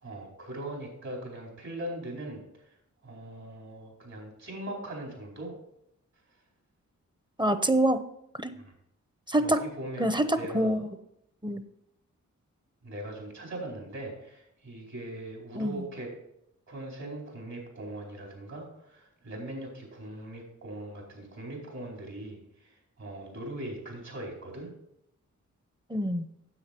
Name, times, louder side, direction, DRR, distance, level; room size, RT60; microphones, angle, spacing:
voice 1, 0.0-2.4 3.0-5.5 8.5-8.6 9.4-10.8 12.8-16.1 16.7-24.7, right 1 dB, 60° right, -1 dB, 4.6 m, -40 dB
voice 2, 7.4-8.0 8.4-8.5 9.3-9.7 10.0-10.8 11.4-11.6 15.5-15.8 25.9-26.2, right 1 dB, 15° right, 11 dB, 0.8 m, -26 dB
9.7 x 7.7 x 4.5 m, 0.79 s
cardioid pair, 60°, 31 cm